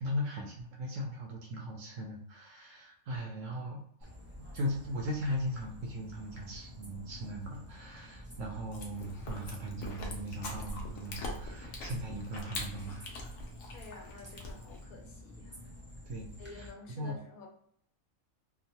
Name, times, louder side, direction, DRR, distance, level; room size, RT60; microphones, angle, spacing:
voice 1, 0.0-3.8 4.5-13.1 16.1-16.7 17.0-17.2, equal, 65° right, 0 dB, 0.8 m, -38 dB
sound 1, 4.0-16.7, left 1 dB, 15° right, 0.4 m, -49 dB
Chewing mastication, 8.7-14.8, left 1 dB, 70° left, 1.0 m, -43 dB
voice 2, 13.7-15.6 16.4-17.5, left 3 dB, 90° left, 0 dB, 1.2 m, -50 dB
2.8 x 2.1 x 2.8 m, 0.66 s
omnidirectional pair, 1.5 m